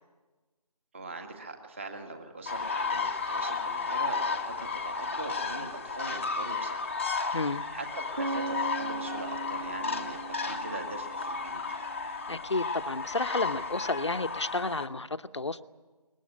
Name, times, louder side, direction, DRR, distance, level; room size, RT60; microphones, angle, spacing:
voice 1, 0.9-7.1 7.7-11.9, right 2 dB, 20° right, 4 dB, 1.9 m, -42 dB
sound 1, 2.5-14.9, left 4 dB, 20° left, 1.0 m, -33 dB
voice 2, 7.3-7.6 12.3-15.6, left 3 dB, 45° left, 11 dB, 0.9 m, -31 dB
sound 2, 8.2-12.1, right 3 dB, 50° right, 1.2 m, -39 dB
22.0 x 20.0 x 9.9 m, 1.3 s
figure-of-eight pair, 165°, 20 cm